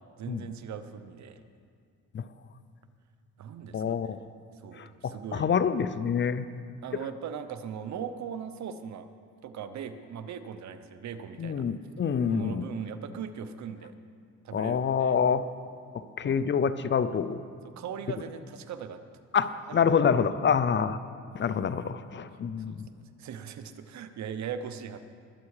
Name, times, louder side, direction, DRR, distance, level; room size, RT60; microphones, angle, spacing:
voice 1, 0.2-1.4 3.4-4.2 4.6-5.5 6.8-9.1 9.4-11.6 12.2-13.9 14.4-15.2 16.2-16.4 17.6-19.0 19.7-19.8 22.7-25.0, right 7 dB, 65° right, 10 dB, 0.9 m, -39 dB
voice 2, 3.7-4.2 4.8-6.5 11.4-12.6 14.5-15.4 16.2-17.4 19.3-21.0 21.3-22.9, left 7 dB, 40° left, 13 dB, 0.6 m, -27 dB
20.5 x 8.2 x 4.9 m, 2.2 s
cardioid pair, 90°, 30 cm